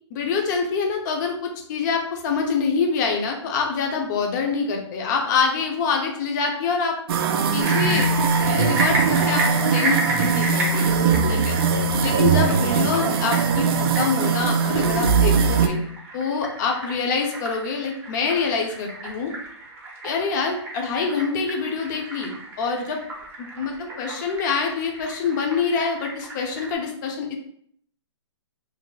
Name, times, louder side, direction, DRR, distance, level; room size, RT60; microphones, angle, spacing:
voice 1, 0.1-7.0 7.5-8.1 8.4-11.6 12.0-15.8 16.1-19.3 20.0-23.0 23.4-27.4, left 5 dB, 40° left, 2 dB, 0.6 m, -25 dB
sound 1, 7.1-15.7, right 5 dB, 50° right, 0.4 m, -21 dB
sound 2, 7.6-26.7, right 2 dB, 15° right, 0.6 m, -33 dB
2.6 x 2.0 x 3.8 m, 0.67 s
hypercardioid pair, 140°, 15 cm